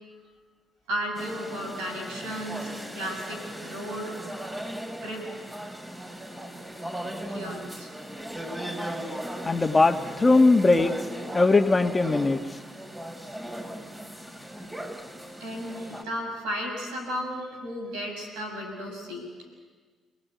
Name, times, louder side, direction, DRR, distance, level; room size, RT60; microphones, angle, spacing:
voice 1, 0.9-4.1 5.0-5.3 7.3-7.9 15.4-19.3, equal, 85° right, 2 dB, 6.9 m, -34 dB
sound 1, 1.1-16.0, equal, 15° right, 5.6 m, -38 dB
voice 2, 9.5-11.0 11.3-12.4, left 3 dB, 25° left, 5 dB, 1.9 m, -20 dB
29.5 x 18.5 x 9.6 m, 1.4 s
hypercardioid pair, 55°, 0 cm